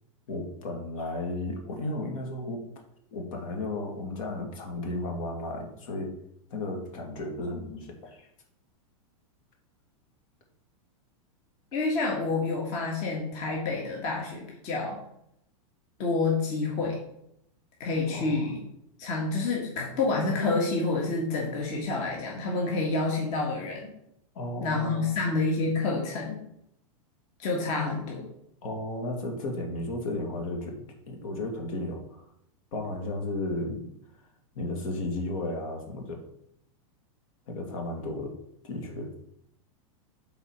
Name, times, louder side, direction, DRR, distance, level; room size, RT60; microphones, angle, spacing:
voice 1, 0.3-2.7 3.1-6.1 6.5-8.3 18.1-18.5 24.3-25.1 27.7-27.8 28.6-32.2 32.7-33.8 34.6-36.2 37.5-38.4 38.6-39.1, left 2 dB, 65° left, 2 dB, 2.2 m, -34 dB
voice 2, 11.7-15.0 16.0-17.0 17.8-18.6 19.0-23.9 24.6-26.4 27.4-28.2, left 3 dB, 40° left, -1 dB, 1.7 m, -28 dB
8.0 x 4.1 x 5.9 m, 0.76 s
supercardioid pair, 150°, 19 cm